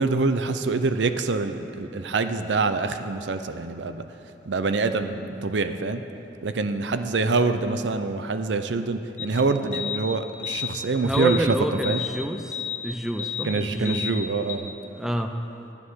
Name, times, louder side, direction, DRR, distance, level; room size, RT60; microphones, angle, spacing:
voice 1, 0.0-4.0 4.5-6.0 6.4-11.6 11.8-12.0 13.4-14.7, right 3 dB, 70° right, 9 dB, 0.6 m, -25 dB
sound 1, 9.2-9.3 9.7-10.0 10.4-10.7 11.1-11.4 11.8-12.1 12.5-12.8 13.2-13.5 13.8-14.1 14.5-14.6, left 9 dB, 40° left, 1.0 m, -31 dB
voice 2, 11.0-12.6 12.8-14.1 15.0-15.4, equal, 5° right, 6 dB, 0.5 m, -28 dB
11.5 x 9.5 x 6.3 m, 2.9 s
head